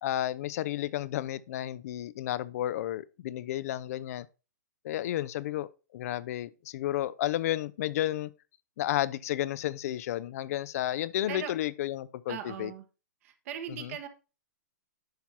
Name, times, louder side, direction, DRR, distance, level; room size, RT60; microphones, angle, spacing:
voice 1, 0.0-4.3 4.8-8.3 8.8-12.7 13.8-13.9, left 13 dB, 55° left, 0.4 m, -32 dB
voice 2, 12.3-12.8 13.2-14.1, right 9 dB, 50° right, 1.1 m, -39 dB
10.5 x 5.8 x 2.8 m
hypercardioid pair, 125°, 10 cm